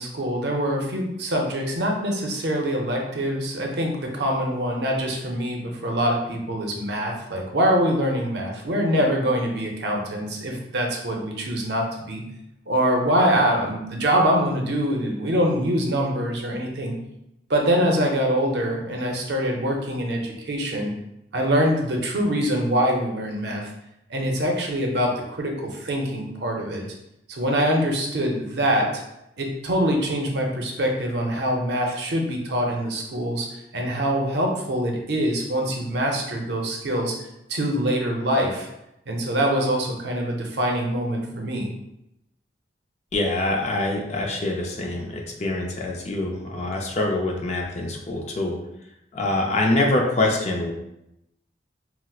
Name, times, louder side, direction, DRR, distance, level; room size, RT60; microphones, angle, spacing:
voice 1, 0.0-12.2 12.7-16.9 17.5-20.9 21.3-23.7 24.1-26.8 27.3-29.0 29.4-33.5 33.7-37.2 37.5-38.7 39.1-41.7, equal, 65° right, 1 dB, 0.6 m, -24 dB
voice 2, 43.1-48.6 49.1-50.7, left 2 dB, 40° left, 1 dB, 0.5 m, -25 dB
4.3 x 2.0 x 2.3 m, 0.84 s
head